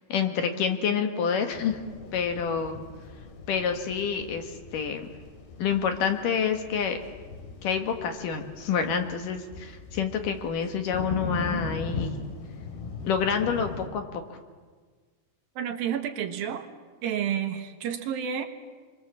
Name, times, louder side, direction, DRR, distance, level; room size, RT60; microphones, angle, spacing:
voice 1, 0.1-1.8 2.1-2.8 3.5-5.1 5.6-7.0 7.6-12.2 13.0-14.2, left 6 dB, 65° left, 6 dB, 2.8 m, -28 dB
sound 1, 1.5-13.9, left 4 dB, 90° left, 4.7 m, -39 dB
voice 2, 15.6-16.7 17.0-18.5, right 8 dB, 70° right, 4 dB, 3.0 m, -30 dB
28.5 x 23.5 x 7.4 m, 1.5 s
omnidirectional pair, 4.5 m